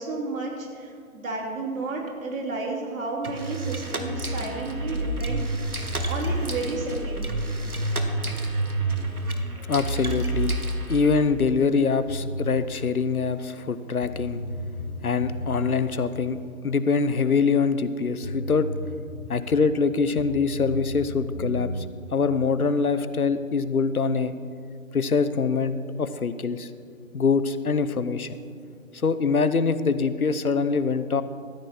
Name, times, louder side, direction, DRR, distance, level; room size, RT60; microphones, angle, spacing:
voice 1, 0.0-5.7 6.1-7.3, right 3 dB, 65° right, -3 dB, 3.3 m, -32 dB
sound 1, 3.2-11.2, right 2 dB, 90° right, 1.3 m, -29 dB
voice 2, 9.7-10.5 10.9-14.4 15.0-18.7 19.3-21.8 22.1-24.3 24.9-26.7 27.1-28.4 28.9-31.2, left 5 dB, 85° left, 12 dB, 0.7 m, -24 dB
sound 2, 12.1-12.7 13.7-13.8 14.0-15.7 17.9-18.0 18.2-19.4 20.2-21.9, equal, 30° left, 0.9 m, -33 dB
14.0 x 8.9 x 4.4 m, 2.3 s
figure-of-eight pair, 135°, 42 cm